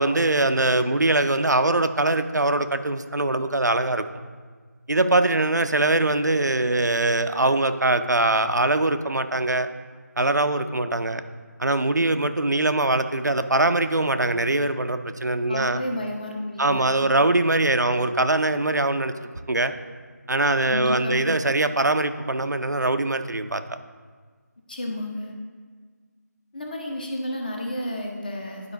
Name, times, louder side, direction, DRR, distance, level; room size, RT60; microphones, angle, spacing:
voice 1, 0.0-4.0 4.9-9.7 10.2-11.2 11.6-15.8 16.6-19.1 19.5-19.7 20.3-23.8, right 2 dB, 80° right, 9 dB, 0.5 m, -22 dB
voice 2, 15.5-17.1 20.7-21.3 24.7-25.3 26.5-28.7, left 1 dB, 30° left, 1 dB, 0.8 m, -32 dB
10.5 x 4.8 x 2.8 m, 1.6 s
figure-of-eight pair, 165°, 10 cm